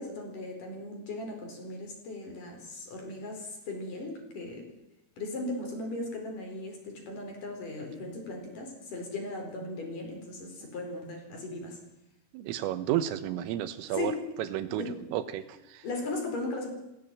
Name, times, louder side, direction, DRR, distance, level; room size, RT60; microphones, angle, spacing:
voice 1, 0.0-4.8 5.2-11.8 13.9-14.3 14.6-15.0 15.8-16.7, left 2 dB, 40° left, 3 dB, 5.6 m, -37 dB
voice 2, 12.3-14.1 14.4-14.9 15.1-15.8, right 12 dB, 80° right, 12 dB, 3.7 m, -32 dB
18.5 x 16.0 x 9.2 m, 0.91 s
omnidirectional pair, 5.9 m